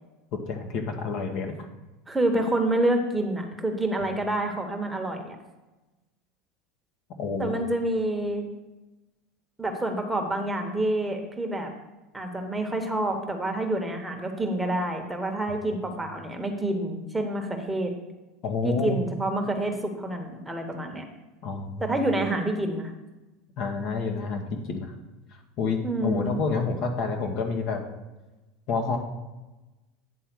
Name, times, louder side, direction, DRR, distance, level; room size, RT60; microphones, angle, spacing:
voice 1, 0.5-1.5 7.2-7.6 18.4-19.0 21.4-21.9 23.6-24.9 25.6-27.8 28.7-29.0, left 4 dB, 55° left, 3 dB, 1.1 m, -28 dB
voice 2, 2.1-5.4 7.4-8.5 9.6-11.7 12.1-17.9 18.6-21.0 21.8-22.9 25.8-26.3, right 1 dB, 10° right, 3 dB, 1.1 m, -28 dB
9.1 x 3.6 x 6.0 m, 1.1 s
hypercardioid pair, 95°, 0 cm